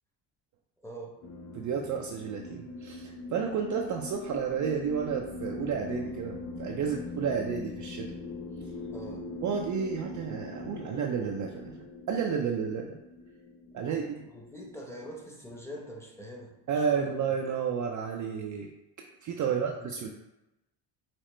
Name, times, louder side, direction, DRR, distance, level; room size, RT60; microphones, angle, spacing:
voice 1, 0.8-1.1 8.9-9.3 13.8-17.4 19.4-19.9, equal, 5° left, -1 dB, 0.9 m, -44 dB
sound 1, 1.2-15.8, left 2 dB, 35° left, 0.4 m, -42 dB
voice 2, 1.5-8.1 9.4-13.0 13.7-14.2 16.7-18.7 19.2-20.1, right 6 dB, 40° right, 1 dB, 0.5 m, -31 dB
5.8 x 2.1 x 3.1 m, 0.95 s
supercardioid pair, 90°, 47 cm